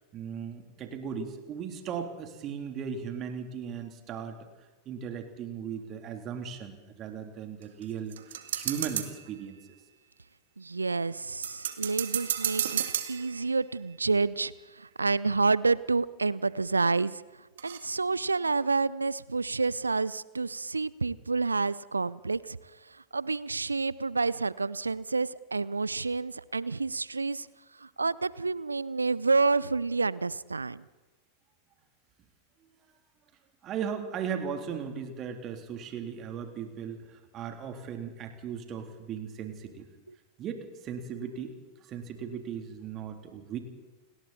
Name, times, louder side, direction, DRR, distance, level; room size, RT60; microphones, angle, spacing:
voice 1, 0.1-4.4 4.8-9.6 33.6-39.9 40.4-41.5 41.8-43.6, right 7 dB, 30° right, 5 dB, 3.3 m, -37 dB
sound 1, 7.6-9.3 11.4-13.7 15.9-16.0 16.5-16.6 17.6-17.8, right 10 dB, 60° right, 1.8 m, -33 dB
voice 2, 10.6-12.8 13.1-17.2 17.6-22.6 22.9-27.5 27.8-30.8, right 3 dB, 80° right, 21 dB, 0.6 m, -29 dB
29.5 x 20.5 x 4.3 m, 1.2 s
figure-of-eight pair, 90°, 0 cm